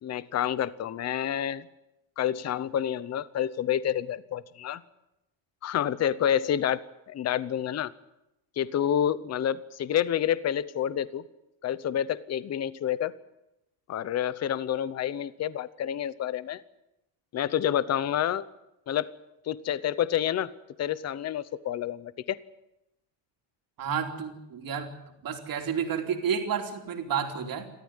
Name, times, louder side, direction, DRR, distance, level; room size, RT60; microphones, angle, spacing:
voice 1, 0.0-1.7 2.2-4.8 5.6-7.9 8.6-11.2 11.6-13.1 13.9-16.6 17.3-18.4 18.9-19.1 19.5-20.5 20.8-22.4, left 10 dB, 30° left, 17 dB, 0.8 m, -28 dB
voice 2, 23.8-25.0 25.2-27.7, right 7 dB, 45° right, 4 dB, 3.3 m, -31 dB
29.5 x 13.5 x 9.7 m, 0.90 s
cardioid pair, 165°, 49 cm